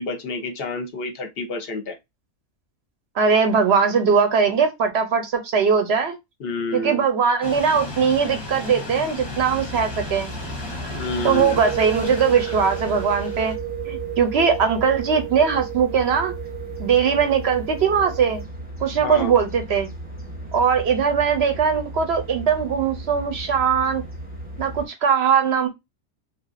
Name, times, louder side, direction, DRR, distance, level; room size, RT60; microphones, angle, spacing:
voice 1, 0.0-2.0 6.4-7.0 10.9-11.6 19.0-19.3, left 3 dB, 50° left, 0.8 m, -29 dB
voice 2, 3.2-6.2 6.7-10.3 11.2-13.5 13.9-16.3 16.8-18.4 18.8-19.9 20.5-24.0 24.6-25.7, right 6 dB, 60° right, 0.8 m, -20 dB
sound 1, 7.4-13.6, left 2 dB, 25° left, 0.7 m, -35 dB
sound 2, 9.2-24.9, right 1 dB, 10° right, 0.8 m, -36 dB
sound 3, 11.6-18.4, right 14 dB, 80° right, 0.5 m, -33 dB
3.2 x 2.4 x 2.5 m
omnidirectional pair, 1.5 m